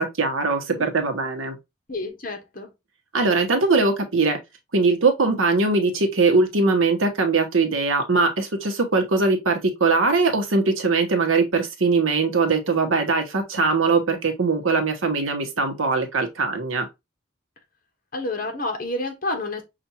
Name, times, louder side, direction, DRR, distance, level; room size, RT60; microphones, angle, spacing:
voice 1, 0.0-1.6 3.1-4.4 4.7-16.9, right 3 dB, 85° right, 1.0 m, -21 dB
voice 2, 1.9-2.7 18.1-19.6, left 2 dB, 45° left, 1.1 m, -29 dB
5.7 x 2.5 x 2.8 m
head